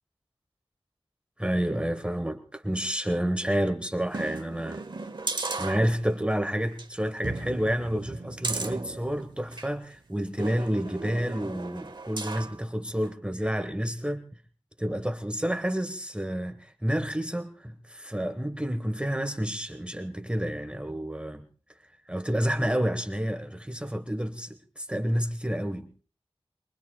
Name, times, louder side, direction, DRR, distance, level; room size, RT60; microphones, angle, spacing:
voice 1, 1.4-4.8 5.6-14.2 14.8-21.4 22.1-25.9, equal, 10° right, 1.2 m, -29 dB
sound 1, 4.1-6.3 6.7-6.9 7.2-9.7 10.4-12.6 13.0-13.1, right 3 dB, 50° right, 1.0 m, -36 dB
24.0 x 23.5 x 2.3 m
wide cardioid pair, 75°, 10 cm